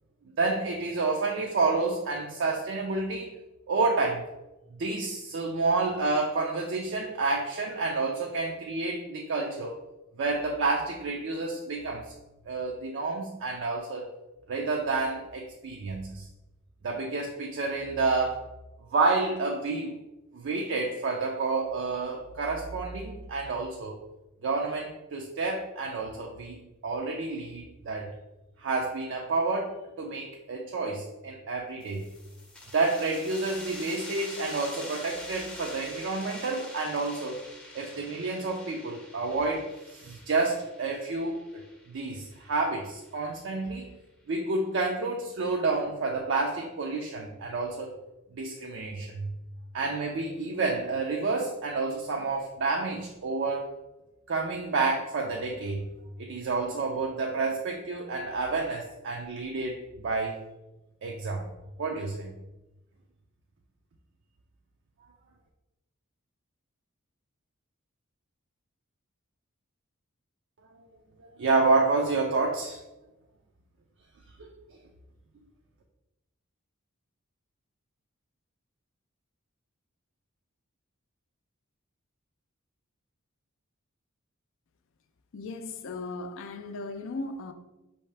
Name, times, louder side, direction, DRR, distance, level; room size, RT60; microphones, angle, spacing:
voice 1, 0.4-3.3 3.7-4.3 4.8-9.8 10.2-12.1 12.4-14.1 14.5-16.3 16.8-18.4 18.9-20.0 20.3-24.0 24.4-26.6 26.8-28.1 28.6-32.0 32.7-37.4 37.7-41.6 41.9-43.9 44.3-47.9 48.3-49.4 49.7-53.7 54.3-55.9 56.2-60.4 61.0-61.4 61.8-62.3 70.8-70.9 71.2-72.8 74.4-74.5, right 3 dB, 60° right, 0.5 m, -29 dB
sound 1, 31.8-43.1, left 1 dB, 5° left, 0.6 m, -45 dB
voice 2, 85.3-87.5, left 3 dB, 65° left, 0.4 m, -37 dB
5.4 x 2.8 x 3.3 m
head